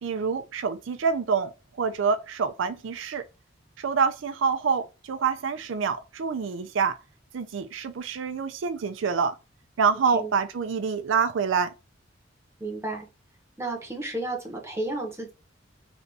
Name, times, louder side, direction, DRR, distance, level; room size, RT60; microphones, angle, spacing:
voice 1, 0.0-1.5 1.8-3.2 3.8-6.9 7.3-9.4 9.8-11.7, right 6 dB, 85° right, 0.4 m, -26 dB
voice 2, 12.6-13.1 13.6-15.3, right 2 dB, 15° right, 1.1 m, -32 dB
3.4 x 2.6 x 4.0 m
head